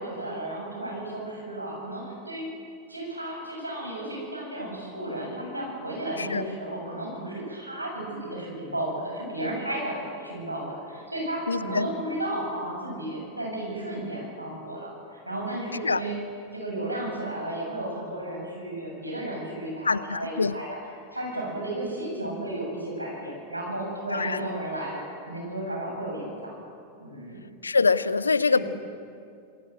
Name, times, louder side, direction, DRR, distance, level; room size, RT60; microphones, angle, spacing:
voice 1, 0.0-2.4 2.9-16.2 16.5-20.8 21.1-26.6 27.0-27.4 28.5-28.6, right 1 dB, 85° right, -1 dB, 7.8 m, -33 dB
voice 2, 11.5-11.9 15.8-16.0 19.8-20.5 24.1-24.3 27.6-28.6, left 4 dB, 75° left, 16 dB, 0.8 m, -24 dB
27.5 x 20.5 x 7.7 m, 2.4 s
figure-of-eight pair, 90°, 0 cm